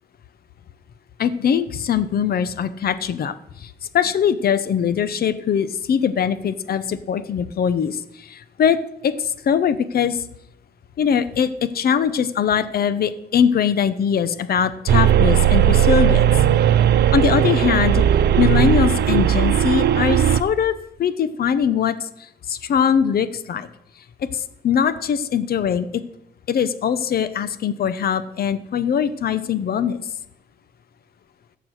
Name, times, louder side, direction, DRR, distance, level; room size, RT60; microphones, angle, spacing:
voice 1, 1.2-10.3 11.0-16.3 17.1-18.0 18.4-20.7 21.0-23.7 24.2-26.0 26.5-30.0, left 8 dB, 65° left, 13 dB, 0.9 m, -21 dB
sound 1, 14.9-20.4, right 10 dB, 80° right, 0.8 m, -17 dB
15.5 x 7.0 x 6.5 m, 0.81 s
cardioid pair, 85°, 17 cm